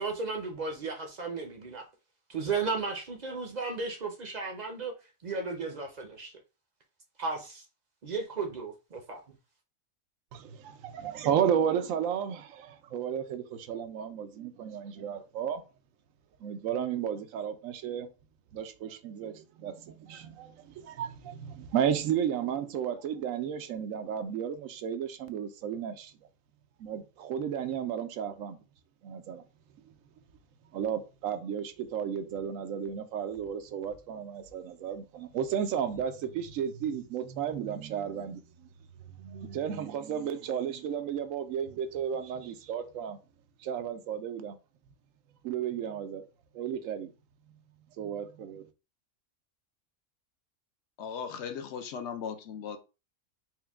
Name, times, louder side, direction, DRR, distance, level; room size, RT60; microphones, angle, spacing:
voice 1, 0.0-1.9 2.3-4.9 5.2-6.3 7.2-7.6 8.0-9.2, right 4 dB, 45° right, 0.6 m, -34 dB
voice 2, 10.3-15.6 16.4-18.1 18.5-26.1 26.8-28.6 29.0-29.4 30.7-38.7 39.2-43.2 43.6-44.6 45.4-46.2 46.5-47.1 48.0-48.7, right 8 dB, 90° right, 1.0 m, -33 dB
voice 3, 51.0-52.8, left 7 dB, 65° left, 0.8 m, -37 dB
4.5 x 2.1 x 3.4 m
omnidirectional pair, 1.3 m